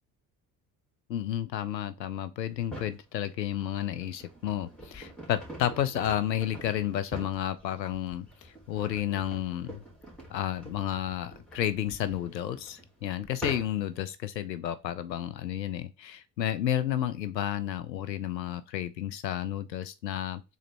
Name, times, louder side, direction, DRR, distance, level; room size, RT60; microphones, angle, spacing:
voice 1, 1.1-9.8 10.3-20.4, left 11 dB, 85° left, 0.6 m, -31 dB
sound 1, 2.5-3.0 3.7-14.0, right 1 dB, ahead, 2.2 m, -45 dB
3.8 x 3.2 x 4.2 m
figure-of-eight pair, 50°, 50 cm